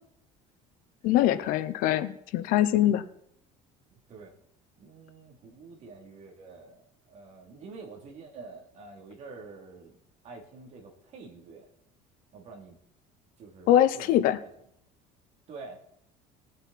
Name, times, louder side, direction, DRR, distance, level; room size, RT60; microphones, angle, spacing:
voice 1, 1.0-3.0 13.7-14.4, left 12 dB, 65° left, 14 dB, 0.7 m, -23 dB
voice 2, 3.9-4.3 4.7-10.0 10.2-11.7 12.3-12.8 13.4-14.5 15.5-15.8, right 4 dB, 45° right, 0 dB, 3.0 m, -47 dB
19.5 x 7.7 x 4.2 m, 0.73 s
cardioid pair, 150°, 15 cm